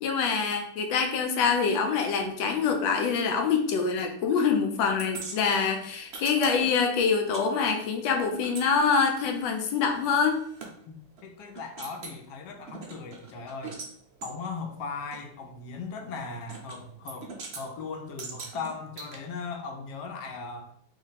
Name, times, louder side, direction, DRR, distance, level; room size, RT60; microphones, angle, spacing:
voice 1, 0.0-10.4, left 5 dB, 90° left, 4 dB, 1.4 m, -25 dB
sound 1, 5.0-7.5 7.7-10.7 11.2-11.3 11.5-12.2 12.7-13.9 14.2-14.3 15.1-15.2 16.5-16.8 17.1-17.6 18.2-19.2, right 4 dB, 75° right, 0.5 m, -42 dB
voice 2, 11.2-13.8 14.2-20.7, left 4 dB, 70° left, 3 dB, 1.1 m, -38 dB
3.1 x 2.6 x 4.0 m, 0.66 s
omnidirectional pair, 2.0 m